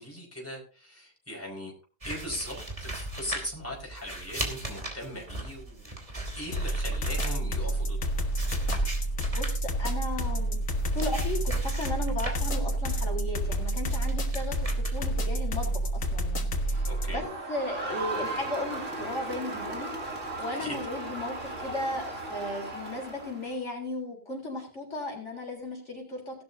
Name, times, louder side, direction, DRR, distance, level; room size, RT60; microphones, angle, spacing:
voice 1, 0.0-1.7 2.0-6.0 6.3-8.1 16.8-17.2 20.5-20.8, equal, 10° left, -2 dB, 5.1 m, -39 dB
sound 1, 2.0-16.9, right 1 dB, 25° right, 2.9 m, -39 dB
sound 2, 6.5-17.2, right 1 dB, 85° left, 2.1 m, -29 dB
voice 2, 9.3-10.6 10.9-17.2 17.5-19.9 20.4-26.4, left 2 dB, 60° left, -1 dB, 4.3 m, -36 dB
Crowd, 16.7-23.6, right 2 dB, 65° right, 3.2 m, -36 dB
18.0 x 12.0 x 2.8 m, 0.35 s
omnidirectional pair, 1.4 m